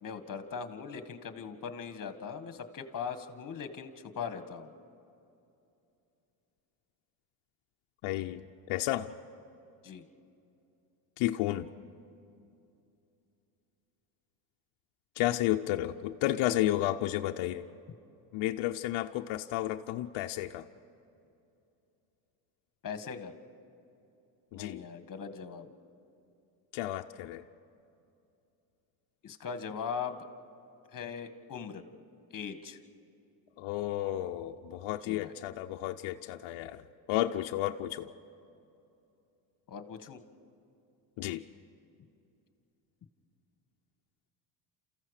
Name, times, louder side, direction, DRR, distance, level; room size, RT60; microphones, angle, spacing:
voice 1, 0.0-4.7 9.8-10.0 22.8-23.3 24.5-25.7 29.2-30.3 30.9-31.8 32.3-32.8 35.0-35.4 39.7-40.2, left 6 dB, 40° left, 8 dB, 1.8 m, -40 dB
voice 2, 8.0-8.4 8.7-9.1 11.2-11.7 15.2-17.6 18.3-20.6 24.5-24.8 26.7-27.4 33.6-36.8 37.1-38.1 41.2-41.4, left 14 dB, 70° left, 4 dB, 0.8 m, -32 dB
28.5 x 15.0 x 6.6 m, 2.7 s
supercardioid pair, 95°, 50 cm